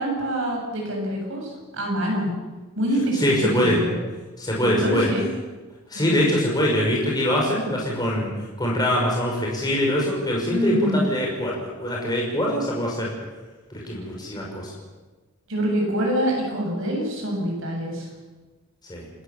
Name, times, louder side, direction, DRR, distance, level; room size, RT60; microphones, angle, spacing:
voice 1, 0.0-2.3 2.8-4.0 4.6-5.3 5.9-6.1 10.5-11.0 15.5-18.1, right 1 dB, 60° right, 0 dB, 8.0 m, -25 dB
voice 2, 3.1-3.8 4.4-5.1 5.9-8.3 8.6-13.1 13.7-14.7 18.9-19.1, left 1 dB, 20° left, -3 dB, 5.6 m, -23 dB
28.5 x 14.5 x 7.5 m, 1.3 s
head